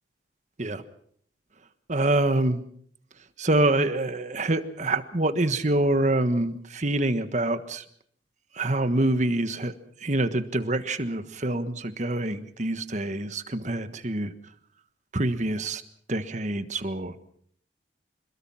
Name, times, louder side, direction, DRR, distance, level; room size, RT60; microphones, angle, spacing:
voice 1, 1.9-2.6 3.4-7.8 8.6-9.7 10.0-14.3 15.1-15.8 16.1-17.1, right 2 dB, 40° right, 10 dB, 1.4 m, -26 dB
27.0 x 21.0 x 5.7 m, 0.64 s
head